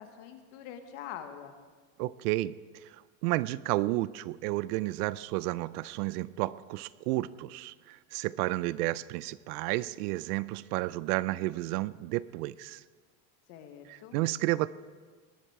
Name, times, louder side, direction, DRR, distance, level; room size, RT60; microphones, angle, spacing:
voice 1, 0.0-1.6 13.5-14.2, left 9 dB, 50° left, 7 dB, 1.4 m, -44 dB
voice 2, 2.0-12.8 13.9-14.7, right 18 dB, 75° right, 19 dB, 0.5 m, -32 dB
20.0 x 10.0 x 4.7 m, 1.5 s
cardioid pair, 180°, 47 cm